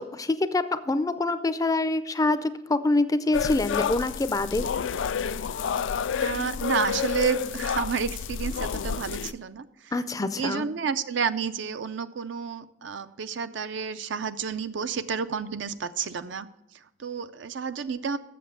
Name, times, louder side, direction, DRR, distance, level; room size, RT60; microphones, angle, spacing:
voice 1, 0.0-4.7 9.9-10.7, left 2 dB, 20° left, 12 dB, 0.4 m, -25 dB
sound 1, 3.3-9.3, left 7 dB, 80° left, 0.4 m, -29 dB
voice 2, 6.2-9.9 10.4-16.5 16.7-18.2, right 6 dB, 70° right, 11 dB, 0.5 m, -30 dB
7.7 x 6.9 x 6.8 m, 0.89 s
head